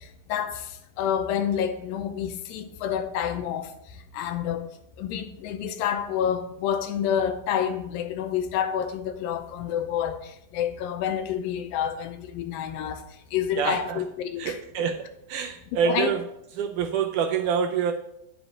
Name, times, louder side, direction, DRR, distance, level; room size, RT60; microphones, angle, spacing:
voice 1, 0.0-3.7 4.1-4.7 5.0-13.1 13.3-14.6 15.9-16.1, left 9 dB, 85° left, 2.4 m, -28 dB
voice 2, 13.6-14.0 14.4-14.9 15.3-16.2 16.6-17.9, right 7 dB, 80° right, 1.9 m, -26 dB
9.9 x 7.0 x 3.7 m
omnidirectional pair, 4.1 m